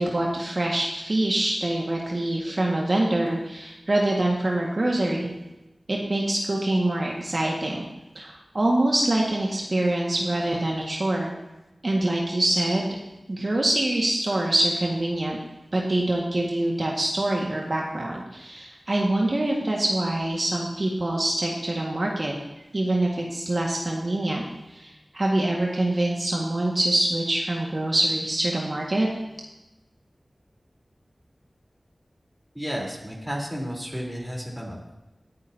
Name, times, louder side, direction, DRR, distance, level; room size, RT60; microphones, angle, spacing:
voice 1, 0.0-5.3 5.9-7.9 8.2-11.3 11.8-12.9 13.3-15.4 15.7-22.3 22.7-24.4 24.7-29.1, right 1 dB, 55° right, -2 dB, 1.9 m, -25 dB
voice 2, 32.5-35.0, equal, 5° right, -2 dB, 4.0 m, -32 dB
19.5 x 10.5 x 2.9 m, 0.99 s
wide cardioid pair, 45°, 0 cm